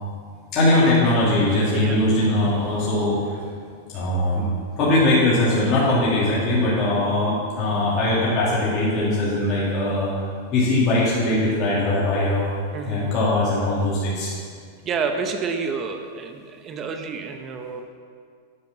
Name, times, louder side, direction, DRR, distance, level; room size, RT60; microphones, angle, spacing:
voice 1, 0.5-3.4 3.9-4.5 4.8-10.1 10.5-12.5 12.9-14.3, left 1 dB, 40° left, -8 dB, 2.4 m, -21 dB
voice 2, 12.7-13.1 14.8-17.8, right 5 dB, 30° right, 6 dB, 0.8 m, -29 dB
9.5 x 5.1 x 5.7 m, 2.1 s
supercardioid pair, 135°, 0 cm